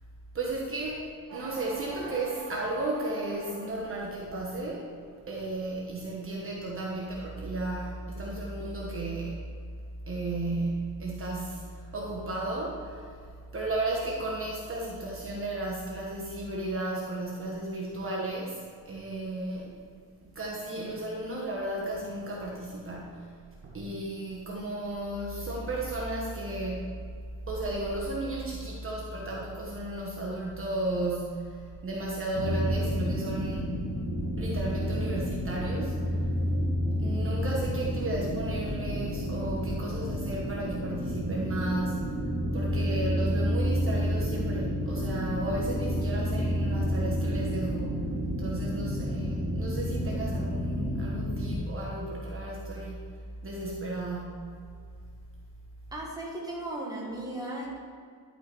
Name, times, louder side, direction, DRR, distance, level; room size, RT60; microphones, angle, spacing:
voice 1, 0.3-4.9 5.3-9.4 10.1-13.1 13.5-19.7 20.3-23.3 23.6-26.9 27.5-33.7 34.4-36.0 37.0-42.1 42.5-53.0 53.4-54.6, right 2 dB, 35° right, -3 dB, 1.2 m, -34 dB
sound 1, 1.3-4.0 4.4-5.0, right 3 dB, 80° right, 1.8 m, -43 dB
sound 2, 32.3-51.5, equal, 35° left, 1.8 m, -30 dB
voice 2, 55.9-57.8, right 1 dB, 10° right, -3 dB, 1.7 m, -36 dB
11.5 x 5.7 x 4.7 m, 2.2 s
wide cardioid pair, 165°, 37 cm